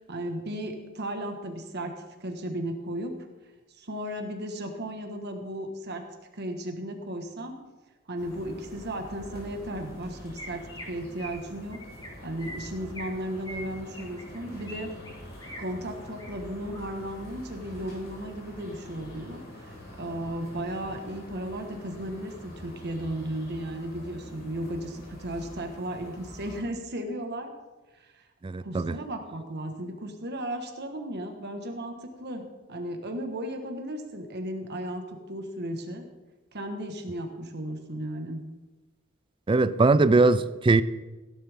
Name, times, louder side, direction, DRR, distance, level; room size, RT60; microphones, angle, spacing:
voice 1, 0.1-1.9 2.2-3.1 3.8-6.0 6.3-7.6 8.1-11.8 12.2-14.9 15.6-27.5 27.9-28.2 28.6-32.4 32.7-36.0 36.5-38.4, right 1 dB, 55° right, 1.6 m, -35 dB
sound 1, 8.2-26.6, left 1 dB, 50° left, 4.6 m, -45 dB
Chirp tweet, 10.4-10.8 11.2-11.4 11.7-12.1 12.4-13.1 13.4-14.8 15.0-15.6 16.0-16.3 16.7-17.1, equal, 20° left, 2.7 m, -43 dB
voice 2, 28.4-29.0 39.5-40.8, right 3 dB, 25° right, 0.4 m, -21 dB
17.0 x 11.0 x 3.6 m
head